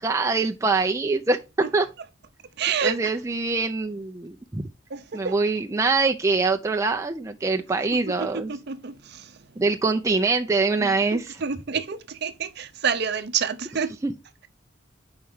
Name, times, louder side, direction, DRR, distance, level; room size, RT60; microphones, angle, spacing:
voice 1, 0.0-1.9 2.8-4.7 5.1-8.5 9.6-11.4 14.0-14.1, right 3 dB, 15° right, 0.4 m, -24 dB
voice 2, 2.6-3.0 4.9-5.4 8.2-9.4 10.8-13.9, right 6 dB, 55° right, 0.7 m, -28 dB
4.8 x 4.4 x 5.4 m
head